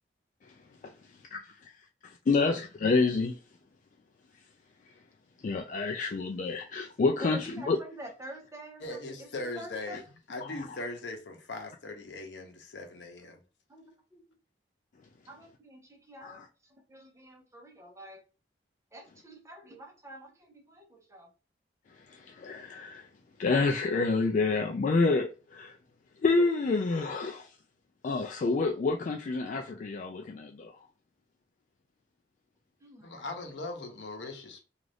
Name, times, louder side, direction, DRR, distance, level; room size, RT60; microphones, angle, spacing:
voice 1, 2.0-3.3 5.4-7.8 10.4-10.5 16.2-16.4 22.1-23.1 23.4-25.7 26.2-27.5 28.0-30.7, left 3 dB, 45° left, 0.3 m, -28 dB
voice 2, 7.2-10.0 13.7-14.4 15.3-18.2 18.9-21.3 32.8-33.2, right 1 dB, 15° right, 0.7 m, -47 dB
voice 3, 8.8-10.0 10.3-13.4 33.0-34.6, left 2 dB, 85° left, 0.7 m, -39 dB
2.5 x 2.4 x 3.3 m
head